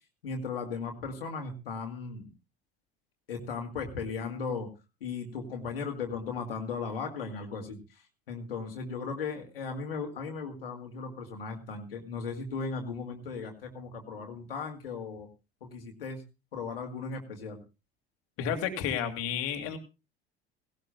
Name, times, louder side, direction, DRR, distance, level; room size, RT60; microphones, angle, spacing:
voice 1, 0.2-2.3 3.3-4.7 5.0-15.3 15.6-16.2 16.5-17.6, left 4 dB, 70° left, 3 dB, 2.2 m, -37 dB
voice 2, 18.4-19.8, left 8 dB, 50° left, 6 dB, 2.4 m, -31 dB
18.0 x 17.5 x 2.3 m, 0.29 s
figure-of-eight pair, 65°, 29 cm